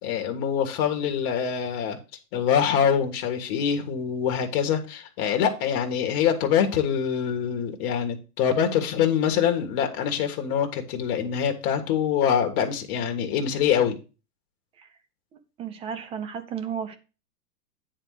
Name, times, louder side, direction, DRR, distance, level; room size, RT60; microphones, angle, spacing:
voice 1, 0.0-2.0 2.3-14.0, left 8 dB, 35° left, 1.7 m, -24 dB
voice 2, 15.6-17.0, right 8 dB, 15° right, 0.5 m, -33 dB
9.6 x 3.7 x 6.4 m
hypercardioid pair, 140°, 47 cm